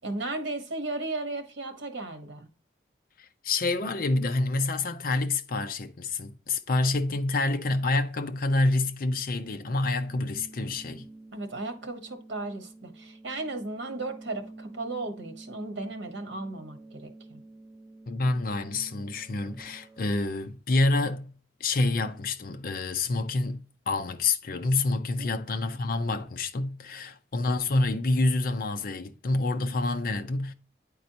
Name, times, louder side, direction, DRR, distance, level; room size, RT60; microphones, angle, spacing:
voice 1, 0.0-2.5 11.3-17.4 25.2-25.3, right 2 dB, 90° right, 1.1 m, -35 dB
voice 2, 3.2-11.0 18.1-21.3 21.6-30.5, left 2 dB, 50° left, 0.5 m, -27 dB
sound 1, 10.0-20.0, right 2 dB, 15° right, 0.8 m, -49 dB
9.2 x 4.3 x 2.7 m
head